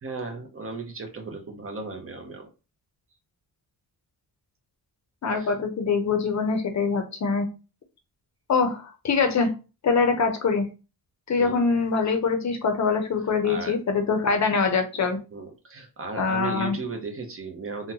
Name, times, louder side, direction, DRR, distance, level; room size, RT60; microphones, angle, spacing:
voice 1, 0.0-2.5 5.3-5.5 11.4-11.6 13.4-13.8 15.3-17.9, right 4 dB, 35° right, 4 dB, 0.7 m, -36 dB
voice 2, 5.2-7.5 8.5-9.5 9.8-10.7 11.3-15.2 16.2-16.8, left 5 dB, 45° left, 6 dB, 0.6 m, -24 dB
3.7 x 2.2 x 2.8 m, 0.31 s
wide cardioid pair, 155°, 39 cm